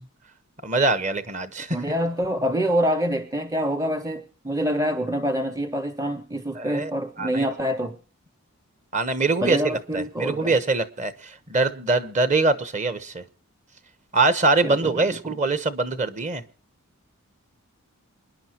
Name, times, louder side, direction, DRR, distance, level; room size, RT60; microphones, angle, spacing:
voice 1, 0.6-1.8 6.5-6.9 7.2-7.5 8.9-13.2 14.1-16.4, right 3 dB, 30° right, 1.0 m, -23 dB
voice 2, 1.7-8.0 9.4-10.5 14.6-15.4, equal, 15° right, 0.7 m, -26 dB
27.5 x 10.0 x 3.0 m
head